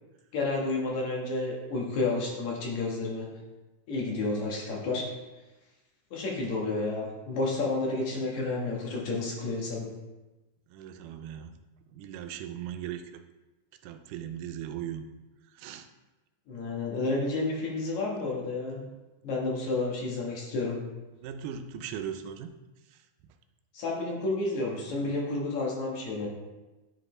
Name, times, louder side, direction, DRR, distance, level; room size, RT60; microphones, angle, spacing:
voice 1, 0.3-3.4 3.9-5.1 6.1-9.9 16.5-18.9 19.2-20.8 23.7-26.3, left 3 dB, 70° left, -2 dB, 2.6 m, -31 dB
voice 2, 10.7-11.5 11.9-13.2 13.8-15.1 15.5-15.9 21.1-22.5 22.9-23.3, right 9 dB, 90° right, 7 dB, 2.2 m, -39 dB
10.5 x 5.0 x 3.2 m, 1.1 s
omnidirectional pair, 3.6 m